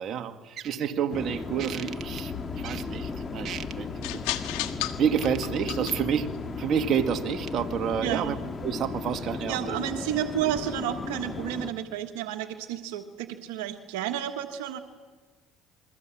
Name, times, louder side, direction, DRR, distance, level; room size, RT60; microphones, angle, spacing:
voice 1, 0.0-4.2 4.6-4.7 5.0-8.4 8.6-9.8, right 8 dB, 55° right, 6 dB, 2.1 m, -29 dB
sound 1, 1.1-11.7, left 3 dB, 30° left, 2.2 m, -36 dB
sound 2, 2.0-9.4, left 13 dB, 85° left, 1.5 m, -38 dB
voice 2, 8.0-8.4 9.5-14.8, right 11 dB, 90° right, 6 dB, 1.5 m, -31 dB
29.0 x 22.5 x 7.6 m, 1.3 s
supercardioid pair, 90°, 0 cm